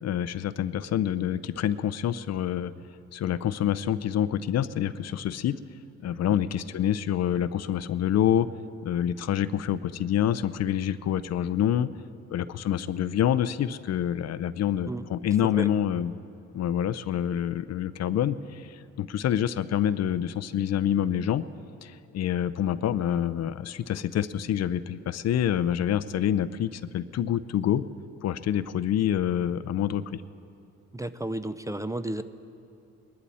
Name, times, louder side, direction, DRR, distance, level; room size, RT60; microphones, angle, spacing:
voice 1, 0.0-2.7 3.1-5.6 6.0-8.5 8.8-11.9 12.3-16.1 16.5-21.4 21.8-27.8 28.2-30.2, left 10 dB, 60° left, 15 dB, 0.5 m, -27 dB
voice 2, 30.9-32.2, right 1 dB, 10° right, 12 dB, 0.5 m, -32 dB
22.0 x 11.5 x 4.2 m, 2.7 s
cardioid pair, 90°, 30 cm